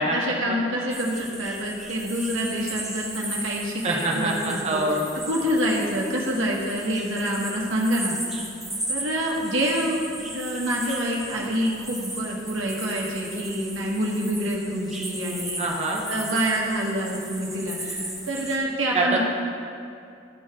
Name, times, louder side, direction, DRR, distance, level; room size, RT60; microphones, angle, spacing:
voice 1, 0.1-4.8 5.3-8.2 8.9-15.6 16.1-19.2, equal, 75° right, -2 dB, 1.5 m, -27 dB
sound 1, 0.9-18.6, right 1 dB, ahead, 1.0 m, -36 dB
voice 2, 3.8-5.0 15.6-16.0 18.9-19.2, right 2 dB, 30° right, -1 dB, 1.1 m, -24 dB
14.0 x 4.7 x 3.7 m, 2.5 s
head